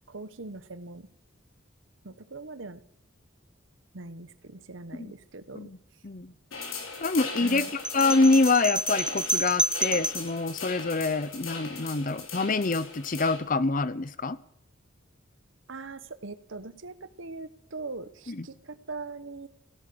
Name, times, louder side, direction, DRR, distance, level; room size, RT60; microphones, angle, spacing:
voice 1, 0.1-1.1 2.0-2.8 3.9-6.0 7.4-7.7 15.7-19.5, right 3 dB, 75° right, 13 dB, 1.1 m, -41 dB
sound 1, 6.5-13.4, left 4 dB, 90° left, 4.6 m, -38 dB
voice 2, 7.0-7.7 7.9-14.4 18.3-18.5, left 3 dB, 40° left, 16 dB, 0.7 m, -26 dB
sound 2, 7.8-10.3, right 1 dB, 5° right, 0.5 m, -29 dB
17.0 x 10.5 x 7.8 m, 0.72 s
head